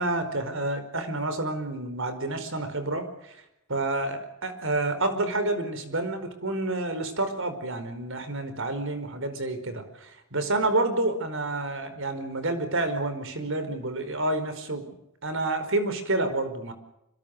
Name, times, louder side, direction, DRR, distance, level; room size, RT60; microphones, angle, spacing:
voice 1, 0.0-3.4 3.7-14.9 15.2-16.7, right 2 dB, 65° right, 10 dB, 4.9 m, -29 dB
26.0 x 24.5 x 6.7 m, 0.81 s
head